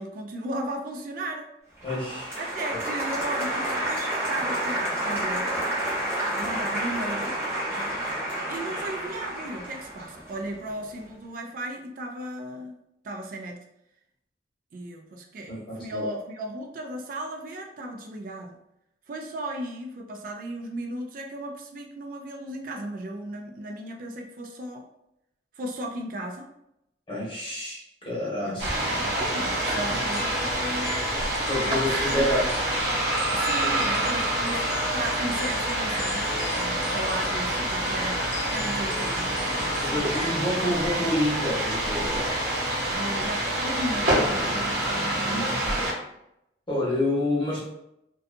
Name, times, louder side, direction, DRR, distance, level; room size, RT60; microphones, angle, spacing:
voice 1, 0.0-1.5 2.4-5.8 6.3-7.4 8.5-12.8 13.0-13.6 14.7-18.6 19.1-24.9 25.6-26.5 28.5-31.0 31.6-32.5 33.3-40.2 42.9-45.9, right 1 dB, 50° right, 2 dB, 0.3 m, -36 dB
voice 2, 1.8-2.4 2.7-2.8 15.5-16.1 27.1-28.7 29.9-30.0 31.4-32.6 39.8-42.2 45.3-45.6 46.7-47.7, left 1 dB, 30° left, -5 dB, 0.9 m, -28 dB
Applause, 1.8-10.9, right 1 dB, 15° right, 0.7 m, -30 dB
sound 1, 28.6-45.9, right 1 dB, 65° right, 0.9 m, -27 dB
sound 2, 29.4-40.3, left 3 dB, 55° left, 0.5 m, -37 dB
2.6 x 2.3 x 2.5 m, 0.81 s
head